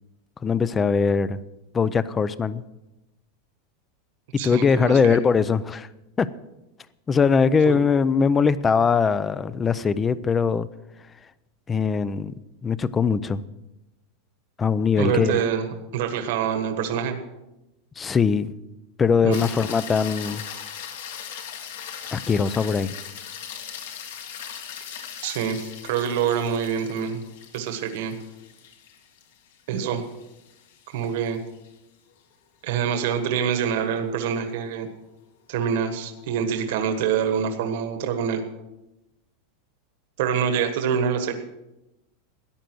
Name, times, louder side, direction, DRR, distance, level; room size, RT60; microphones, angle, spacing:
voice 1, 0.4-1.4 1.7-2.6 4.3-5.9 6.2-6.3 7.1-10.7 11.7-12.3 12.6-13.4 14.6-15.4 18.0-18.5 19.0-20.4 22.1-22.9, left 5 dB, 15° left, 17 dB, 0.4 m, -21 dB
voice 2, 4.4-5.2 7.7-7.8 14.9-15.7 15.9-17.2 19.2-19.5 25.2-27.2 27.5-28.1 29.7-30.0 30.9-31.4 32.6-34.9 35.5-38.4 40.2-41.3, right 7 dB, 60° right, 6 dB, 1.4 m, -25 dB
sound 1, 19.3-31.7 36.2-36.3, left 8 dB, 75° left, 2.2 m, -39 dB
14.5 x 10.5 x 6.2 m, 0.96 s
supercardioid pair, 170°, 0 cm